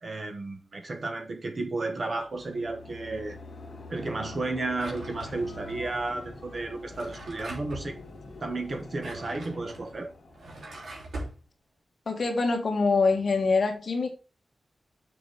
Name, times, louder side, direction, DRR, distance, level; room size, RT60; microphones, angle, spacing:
voice 1, 0.0-3.4 3.9-8.0 8.4-10.1, right 2 dB, 40° right, 1.3 m, -33 dB
sound 1, 2.2-11.2, left 2 dB, 70° left, 2.1 m, -45 dB
Drawer open or close, 4.7-5.7 6.8-7.9 8.8-11.4, right 1 dB, 80° right, 3.0 m, -42 dB
voice 2, 12.1-14.1, left 4 dB, 45° left, 1.8 m, -24 dB
6.7 x 5.4 x 5.1 m
wide cardioid pair, 175°, 0 cm